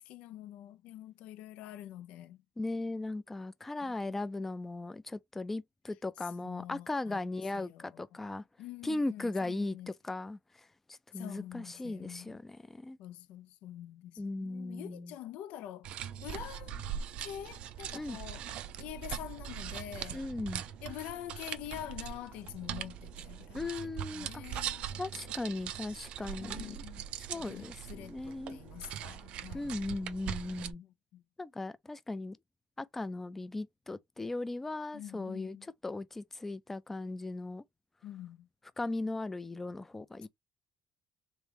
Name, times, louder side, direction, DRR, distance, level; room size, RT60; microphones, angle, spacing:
voice 1, 0.0-2.4 3.8-4.0 6.4-7.2 7.5-8.0 8.6-9.9 11.1-12.4 13.0-15.9 16.2-16.8 17.2-18.5 18.8-20.3 20.8-25.3 26.4-29.7 30.6-31.2 34.9-35.7 38.0-38.5 40.2-40.3, left 12 dB, 85° left, 0.5 m, -46 dB
voice 2, 2.6-8.4 8.8-13.0 14.2-15.1 17.9-18.2 20.1-20.6 23.5-24.4 25.0-26.8 27.2-28.6 29.5-30.8 31.4-32.4 32.8-37.6 38.8-40.3, left 2 dB, 15° left, 0.4 m, -38 dB
sound 1, 15.8-30.7, right 9 dB, 65° right, 0.4 m, -41 dB
3.6 x 3.1 x 3.4 m
cardioid pair, 145°, 2 cm